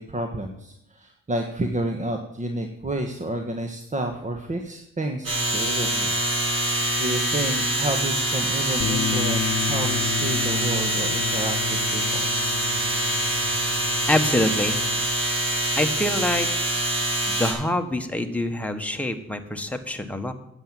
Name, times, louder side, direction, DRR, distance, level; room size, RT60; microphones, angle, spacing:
voice 1, 0.0-6.2 6.6-12.2, right 1 dB, 25° right, 3 dB, 1.4 m, -30 dB
sound 1, 5.2-17.5, right 1 dB, 50° right, 5.1 m, -25 dB
Bass guitar, 8.8-15.0, left 8 dB, 55° left, 1.0 m, -32 dB
voice 2, 14.1-14.8 15.8-16.5 17.3-20.3, left 1 dB, 5° left, 5 dB, 1.4 m, -25 dB
10.0 x 8.2 x 7.5 m, 0.79 s
cardioid pair, 90°, 30 cm